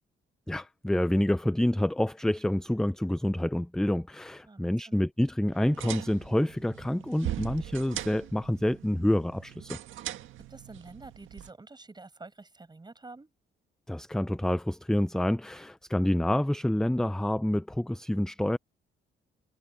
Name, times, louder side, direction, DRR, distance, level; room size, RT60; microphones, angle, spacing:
voice 1, 0.5-9.8 13.9-18.6, left 1 dB, 5° left, 0.5 m, -28 dB
voice 2, 4.4-5.0 10.5-13.3, right 3 dB, 20° right, 7.0 m, -48 dB
sound 1, 5.5-11.5, right 12 dB, 80° right, 1.8 m, -40 dB
cardioid pair, 90°, 20 cm